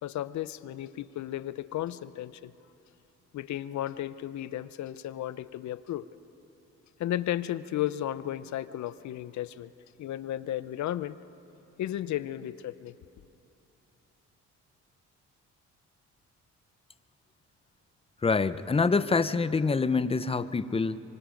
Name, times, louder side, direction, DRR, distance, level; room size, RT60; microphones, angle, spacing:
voice 1, 0.0-2.5 3.3-6.1 7.0-9.7 10.0-11.2 11.8-12.9, left 12 dB, 70° left, 15 dB, 0.7 m, -34 dB
voice 2, 18.2-21.0, left 4 dB, 20° left, 14 dB, 0.7 m, -26 dB
25.0 x 24.5 x 5.2 m, 2.8 s
cardioid pair, 90°, 30 cm